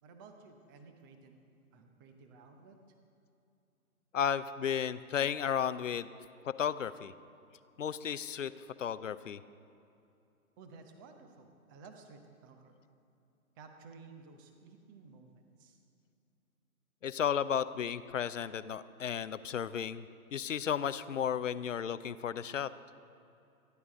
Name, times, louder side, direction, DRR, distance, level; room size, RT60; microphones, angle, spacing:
voice 1, 0.0-1.4 1.7-2.8 10.6-12.7 13.6-15.8, right 4 dB, 15° right, 6 dB, 0.8 m, -55 dB
voice 2, 4.1-6.1 6.4-7.1 7.8-8.5 8.8-9.4 17.0-20.0 20.3-22.7, left 8 dB, 60° left, 15 dB, 0.7 m, -33 dB
27.0 x 11.0 x 3.7 m, 2.8 s
figure-of-eight pair, 140°, 44 cm